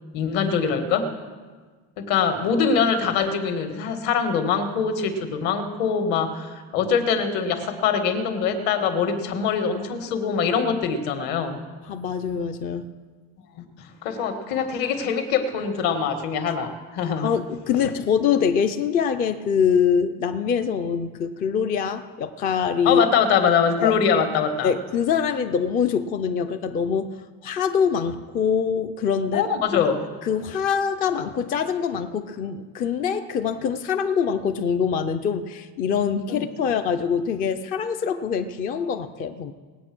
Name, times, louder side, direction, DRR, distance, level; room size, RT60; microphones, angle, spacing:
voice 1, 0.1-1.1 2.0-11.6 13.6-13.7 14.0-17.3 22.9-24.7 29.3-30.0 36.3-36.5, left 6 dB, 60° left, 7 dB, 1.8 m, -23 dB
voice 2, 11.9-12.9 17.2-23.0 23.8-24.0 24.6-27.2 27.4-29.5 29.7-29.8 30.2-39.5, left 7 dB, 25° left, 9 dB, 0.3 m, -24 dB
19.5 x 8.6 x 6.1 m, 1.4 s
cardioid pair, 175°, 38 cm